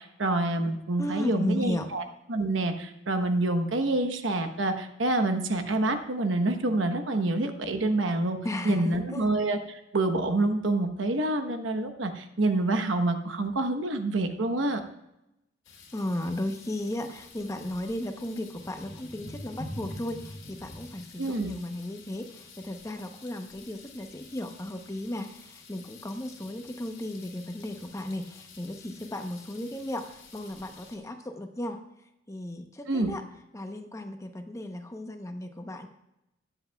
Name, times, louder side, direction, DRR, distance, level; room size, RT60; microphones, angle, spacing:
voice 1, 0.0-2.0 2.3-8.4 8.6-14.8 21.2-21.6 32.9-33.1, right 2 dB, 70° right, 7 dB, 1.0 m, -27 dB
voice 2, 1.0-1.9 8.4-9.3 15.9-31.8 32.3-33.2 33.5-35.9, left 1 dB, 15° left, 6 dB, 0.8 m, -35 dB
sound 1, 15.6-31.0, left 2 dB, 85° left, 2.6 m, -47 dB
20.5 x 7.9 x 2.3 m, 0.88 s
head